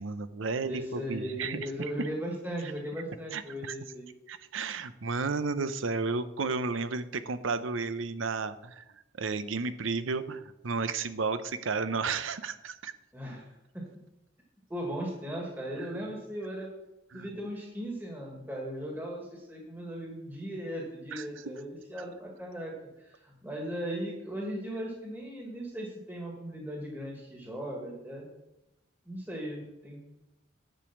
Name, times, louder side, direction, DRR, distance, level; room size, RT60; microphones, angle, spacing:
voice 1, 0.0-1.7 3.3-3.7 4.3-8.9 9.2-12.9 15.8-16.0 17.1-17.3 21.1-21.2, right 4 dB, 80° right, 12 dB, 0.7 m, -33 dB
voice 2, 0.6-4.1 13.1-13.5 13.7-13.8 14.7-16.7 17.1-22.7 23.0-28.3 29.0-30.0, equal, 10° right, -2 dB, 1.7 m, -37 dB
10.5 x 5.2 x 7.2 m, 0.93 s
head